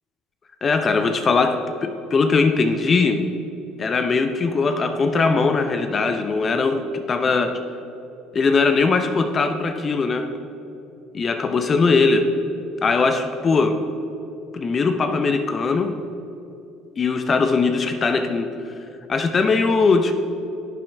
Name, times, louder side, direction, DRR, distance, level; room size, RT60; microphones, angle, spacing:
voice 1, 0.6-3.2 3.8-6.8 7.1-7.6 8.3-10.2 11.1-12.3 12.8-13.8 14.5-15.9 17.0-18.5 19.1-20.1, left 4 dB, 35° left, 7 dB, 0.6 m, -20 dB
11.0 x 7.1 x 3.5 m, 2.9 s
supercardioid pair, 75°, 0 cm